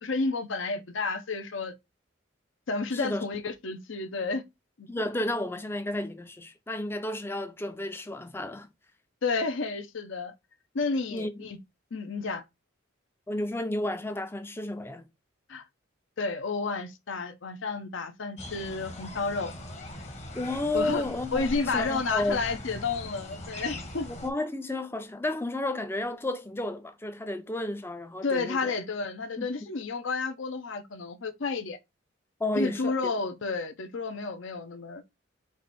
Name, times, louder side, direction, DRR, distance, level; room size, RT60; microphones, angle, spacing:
voice 1, 0.0-1.7 2.7-4.4 4.8-4.9 9.2-10.3 10.7-11.6 11.9-12.4 15.5-15.6 16.2-19.5 20.7-21.0 21.3-24.1 28.2-31.8 32.5-35.0, left 4 dB, 65° left, 0.6 m, -31 dB
voice 2, 2.9-3.3 3.7-3.8 4.9-8.7 11.1-11.4 13.3-15.0 20.3-22.5 24.1-28.7 29.4-29.7 32.4-33.1, left 2 dB, 10° left, 0.4 m, -32 dB
sound 1, 18.4-24.3, left 1 dB, 30° left, 1.0 m, -41 dB
4.7 x 2.6 x 4.0 m
head